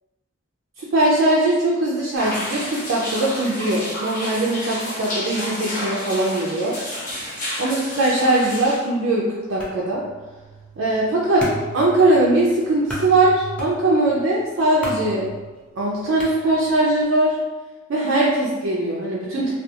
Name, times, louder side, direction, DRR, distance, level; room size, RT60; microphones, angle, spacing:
voice 1, 0.8-6.8 7.6-10.0 10.8-11.5 11.7-15.3 15.8-17.4 17.9-19.5, right 2 dB, 70° right, -5 dB, 0.4 m, -20 dB
sound 1, 2.2-8.8, left 1 dB, 40° left, 0.7 m, -30 dB
sound 2, 9.6-17.0, right 1 dB, 5° left, 0.4 m, -36 dB
2.4 x 2.3 x 2.7 m, 1.2 s
head